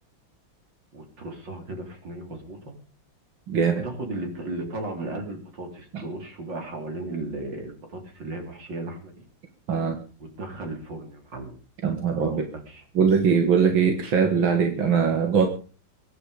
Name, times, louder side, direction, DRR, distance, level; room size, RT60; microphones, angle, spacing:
voice 1, 0.9-2.8 3.7-9.3 10.2-11.6 12.2-12.8, right 2 dB, 65° right, 3 dB, 4.2 m, -36 dB
voice 2, 3.5-3.8 9.7-10.0 11.8-12.5 13.0-15.5, right 6 dB, 85° right, 5 dB, 2.6 m, -21 dB
23.0 x 10.0 x 5.1 m, 0.39 s
omnidirectional pair, 2.1 m